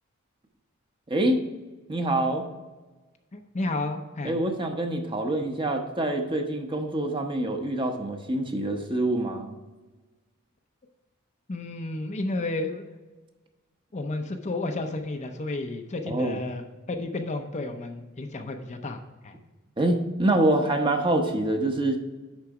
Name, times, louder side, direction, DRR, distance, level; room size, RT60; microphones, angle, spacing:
voice 1, 1.1-1.4 1.9-2.4 4.2-9.5 16.1-16.4 19.8-22.0, right 1 dB, 25° right, 4 dB, 0.9 m, -25 dB
voice 2, 3.3-4.4 11.5-12.9 13.9-19.3, left 2 dB, 35° left, 5 dB, 0.6 m, -32 dB
10.5 x 4.0 x 4.8 m, 1.2 s
head